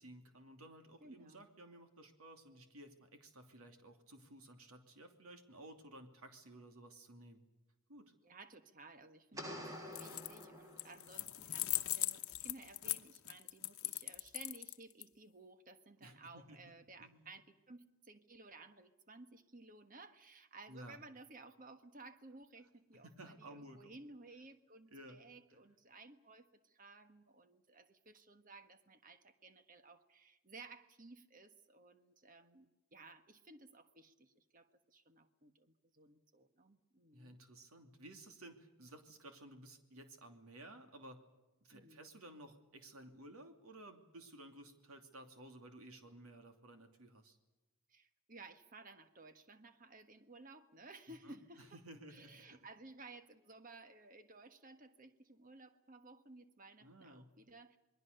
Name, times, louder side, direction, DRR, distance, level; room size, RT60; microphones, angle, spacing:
voice 1, 0.0-7.4 7.9-8.1 9.3-9.6 16.0-16.6 17.0-17.3 20.7-21.0 23.0-24.0 24.9-25.2 37.1-41.2 41.6-47.4 51.2-52.4 56.8-57.3, right 1 dB, 80° right, 6 dB, 2.9 m, -55 dB
voice 2, 1.0-1.4 8.2-37.4 41.7-42.0 47.9-51.8 52.1-57.8, right 3 dB, 40° right, 9 dB, 1.4 m, -57 dB
sound 1, 9.4-11.3, equal, 15° right, 3.0 m, -48 dB
sound 2, 9.9-10.4 10.8-15.0, left 16 dB, 75° left, 1.0 m, -39 dB
27.5 x 21.5 x 6.8 m, 1.0 s
head